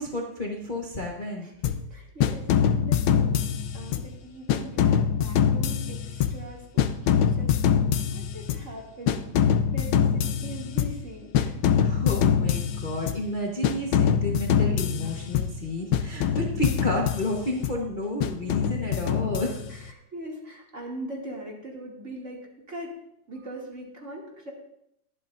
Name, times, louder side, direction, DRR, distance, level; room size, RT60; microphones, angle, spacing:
voice 1, 0.0-1.5 11.8-19.6, left 1 dB, 30° left, -2 dB, 1.2 m, -31 dB
voice 2, 1.4-3.4 3.7-7.7 8.1-11.7 15.0-15.2 19.7-22.9 23.3-24.5, right 1 dB, 40° right, -2 dB, 2.7 m, -41 dB
sound 1, 1.6-1.9 2.2-4.2 4.5-6.5 6.8-8.7 9.1-11.1 11.3-13.3 13.6-15.6 15.9-17.8 18.2-19.9, left 8 dB, 80° left, 1.3 m, -24 dB
22.0 x 8.7 x 2.6 m, 0.76 s
omnidirectional pair, 2.0 m